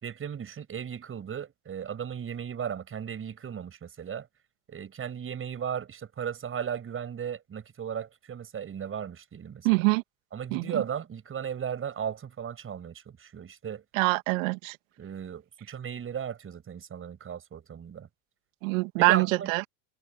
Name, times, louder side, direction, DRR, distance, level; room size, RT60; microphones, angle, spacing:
voice 1, 0.0-4.3 4.7-9.8 10.3-13.8 15.0-18.1 19.0-19.5, right 8 dB, 30° right, 6.2 m, -36 dB
voice 2, 9.6-10.0 10.5-10.8 13.9-14.8 18.6-19.7, right 28 dB, 65° right, 2.4 m, -24 dB
hypercardioid pair, 95°, 42 cm